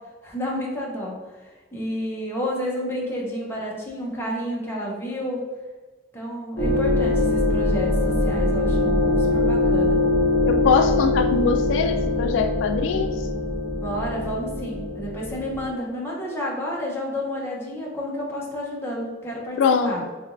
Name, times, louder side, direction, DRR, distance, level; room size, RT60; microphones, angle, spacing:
voice 1, 0.2-1.1 1.4-5.4 6.1-10.0 13.8-19.6 19.8-20.0, equal, 15° left, -4 dB, 0.7 m, -30 dB
sound 1, 6.6-15.7, left 2 dB, 50° left, 0.7 m, -22 dB
voice 2, 10.5-13.1 19.6-20.0, left 5 dB, 90° left, 8 dB, 0.3 m, -22 dB
3.8 x 3.3 x 2.5 m, 1.3 s
head